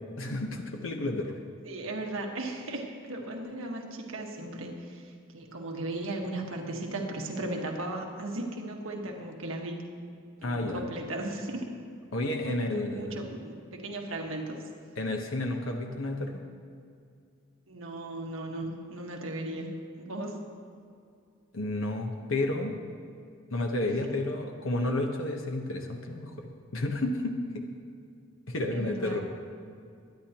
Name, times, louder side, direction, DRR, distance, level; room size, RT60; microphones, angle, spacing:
voice 1, 0.2-1.4 10.4-10.8 12.1-13.2 15.0-16.3 21.5-22.8 23.5-27.6 28.5-29.2, left 2 dB, 75° left, 3 dB, 1.0 m, -31 dB
voice 2, 1.7-9.8 10.4-11.7 12.4-14.6 17.7-19.7 20.0-20.4 23.8-24.1 28.7-29.2, right 2 dB, 75° right, 1 dB, 1.5 m, -36 dB
22.5 x 10.0 x 3.0 m, 2.3 s
head